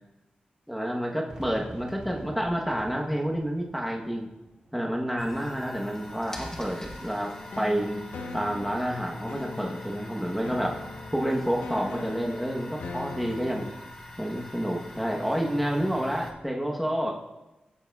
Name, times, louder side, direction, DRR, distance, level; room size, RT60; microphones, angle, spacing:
voice 1, 0.7-4.3 4.7-8.0 8.3-10.8 11.1-13.7 14.2-17.1, equal, ahead, -1 dB, 0.9 m, -29 dB
Fireworks, 1.3-6.3, right 2 dB, 30° right, 1.8 m, -48 dB
sound 1, 5.2-16.3, left 1 dB, 20° left, 1.2 m, -43 dB
sound 2, 7.2-13.7, left 3 dB, 85° left, 0.6 m, -41 dB
14.0 x 7.0 x 2.3 m, 1.0 s
wide cardioid pair, 135°, 3 cm